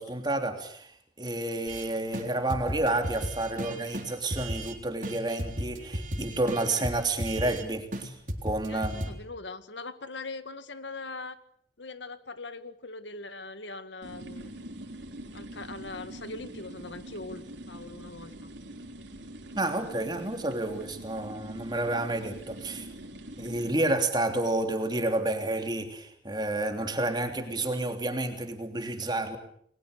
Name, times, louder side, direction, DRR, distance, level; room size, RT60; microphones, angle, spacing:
voice 1, 0.0-8.2 8.4-9.1 19.5-22.9 23.4-29.4, right 2 dB, 25° right, 6 dB, 3.2 m, -30 dB
sound 1, 1.7-1.9 2.1-2.2 2.5-4.7 5.0-7.6 7.9-8.0 8.3-9.1, equal, 45° right, 3.7 m, -35 dB
voice 2, 8.7-11.4 11.8-14.5 15.3-18.5, left 3 dB, 75° left, 11 dB, 1.9 m, -41 dB
sound 2, 14.0-23.7, right 1 dB, 80° right, 3.7 m, -44 dB
29.5 x 21.5 x 6.8 m, 0.64 s
head